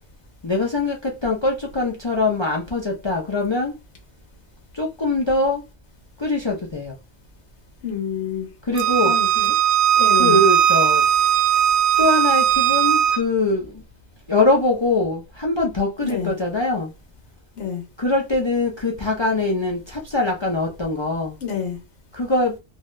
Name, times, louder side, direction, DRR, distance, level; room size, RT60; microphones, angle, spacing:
voice 1, 0.4-3.7 4.8-5.6 6.2-6.9 8.7-9.1 10.2-11.0 12.0-13.7 14.3-16.9 18.0-21.3 22.1-22.5, left 2 dB, 35° left, 0.5 m, -22 dB
voice 2, 7.8-8.5 9.0-9.5 10.0-10.4 16.0-16.3 17.6-17.8 21.4-21.8, left 7 dB, 85° left, 1.1 m, -28 dB
Bowed string instrument, 8.8-13.2, right 9 dB, 80° right, 0.9 m, -18 dB
2.7 x 2.3 x 3.0 m
omnidirectional pair, 1.1 m